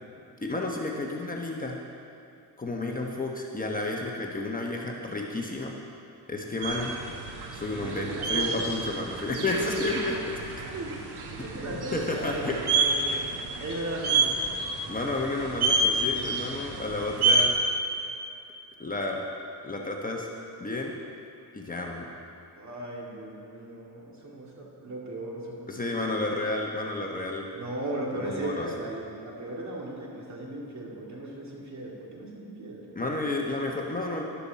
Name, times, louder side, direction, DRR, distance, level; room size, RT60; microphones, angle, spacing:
voice 1, 0.4-1.8 2.6-5.8 6.3-6.9 7.5-10.1 11.9-12.6 14.9-17.5 18.8-19.3 19.6-20.3 20.6-20.9 21.5-22.1 25.7-27.5 28.2-28.7 32.9-34.2, left 2 dB, 20° left, 0 dB, 1.1 m, -31 dB
sound 1, 6.6-17.5, right 3 dB, 70° right, 1.5 m, -29 dB
voice 2, 7.7-8.6 9.3-10.0 10.6-11.0 11.3-14.4 22.5-26.4 27.5-32.9, right 2 dB, 45° right, -3 dB, 2.6 m, -37 dB
13.0 x 12.0 x 4.2 m, 2.7 s
cardioid pair, 115°, 41 cm